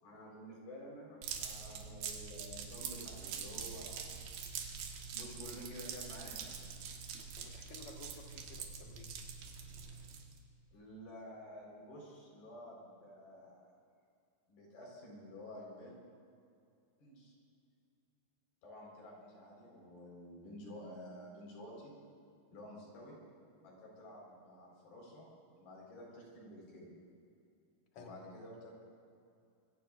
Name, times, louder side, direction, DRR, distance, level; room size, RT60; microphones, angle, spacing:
voice 1, 0.0-4.2 5.1-6.5 10.7-13.6 14.5-16.0 17.0-17.3 18.6-21.9 22.5-23.2 23.6-25.3 25.6-26.9 28.0-28.7, equal, 70° left, -3 dB, 6.4 m, -51 dB
sound 1, 1.2-10.4, right 6 dB, 80° right, 3.3 m, -45 dB
voice 2, 7.4-9.2 27.9-28.2, left 4 dB, 50° left, 1 dB, 1.9 m, -54 dB
25.5 x 22.0 x 2.5 m, 2.5 s
omnidirectional pair, 4.5 m